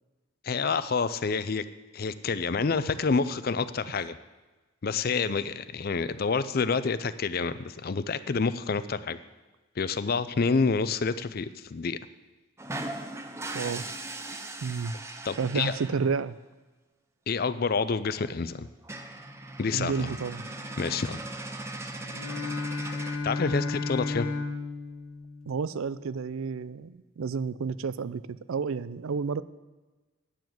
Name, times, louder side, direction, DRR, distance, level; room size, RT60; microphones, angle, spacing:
voice 1, 0.4-1.6 1.9-4.2 4.8-9.2 9.8-12.0 15.2-15.8 17.3-18.7 19.6-20.1 20.8-21.2 23.2-24.3, left 4 dB, 45° left, 14 dB, 0.5 m, -28 dB
sound 1, 12.6-16.2 17.8-17.9 18.1-18.3 18.6-18.7 18.8-23.2, right 2 dB, 15° right, 0.6 m, -39 dB
voice 2, 13.5-13.8 14.6-14.9 15.4-16.4 19.7-20.4 25.5-29.4, right 5 dB, 85° right, 16 dB, 0.5 m, -31 dB
Bowed string instrument, 22.0-26.1, left 3 dB, 90° left, 1.4 m, -34 dB
10.0 x 7.1 x 7.6 m, 1.2 s
head